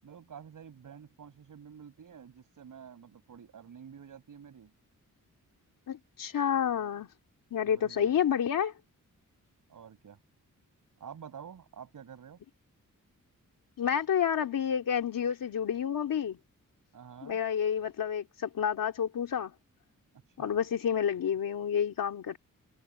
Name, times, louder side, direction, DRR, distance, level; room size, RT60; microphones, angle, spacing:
voice 1, 0.0-4.7 7.6-8.2 9.7-10.2 11.0-12.4 16.9-17.4 20.4-20.6, right 7 dB, 75° right, 6.2 m, -49 dB
voice 2, 5.9-7.1 7.5-8.7 13.8-16.4 17.2-19.5 20.4-22.4, left 8 dB, 85° left, 2.8 m, -29 dB
wide cardioid pair, 140°, 33 cm